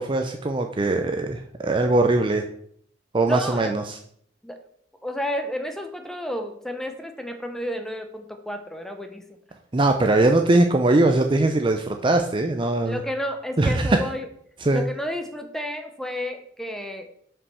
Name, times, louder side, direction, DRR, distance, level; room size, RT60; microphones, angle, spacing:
voice 1, 0.0-2.4 3.1-4.0 9.7-13.0 13.6-14.0 14.6-14.8, right 2 dB, 25° right, 5 dB, 0.5 m, -21 dB
voice 2, 3.2-3.8 4.4-4.6 5.0-9.2 12.9-14.3 14.7-17.1, equal, ahead, 6 dB, 0.8 m, -31 dB
5.6 x 5.4 x 6.3 m, 0.66 s
head